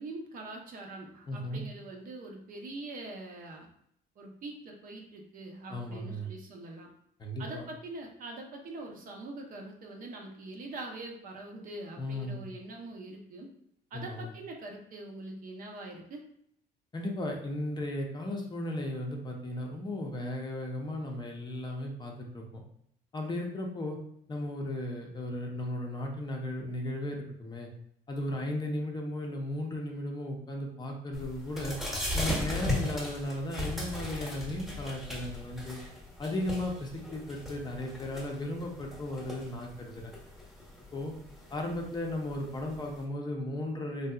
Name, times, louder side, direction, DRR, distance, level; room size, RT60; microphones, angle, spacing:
voice 1, 0.0-3.7 4.2-6.9 7.4-13.5 13.9-16.2, right 2 dB, 55° right, 1 dB, 0.7 m, -43 dB
voice 2, 1.3-1.6 5.7-6.3 7.2-7.6 12.0-12.4 13.9-14.3 16.9-22.6 23.1-24.0 24.3-27.7 28.1-31.8 32.1-35.8 36.2-40.1 40.9-41.1 41.5-44.1, left 1 dB, 25° left, 1 dB, 0.6 m, -35 dB
sound 1, 31.1-43.0, left 1 dB, ahead, 1.0 m, -38 dB
3.3 x 2.7 x 2.3 m, 0.70 s
cardioid pair, 110°, 17 cm